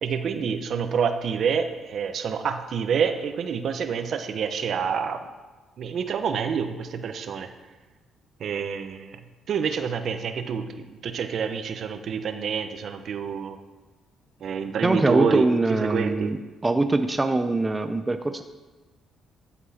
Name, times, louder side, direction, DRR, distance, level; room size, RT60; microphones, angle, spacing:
voice 1, 0.0-5.2 5.8-7.5 8.4-9.2 9.5-13.6 14.4-16.3, right 6 dB, 60° right, 8 dB, 0.9 m, -27 dB
voice 2, 14.8-16.4 16.6-18.4, right 2 dB, 15° right, 8 dB, 0.5 m, -23 dB
13.0 x 7.3 x 4.3 m, 1.3 s
cardioid pair, 95°, 0 cm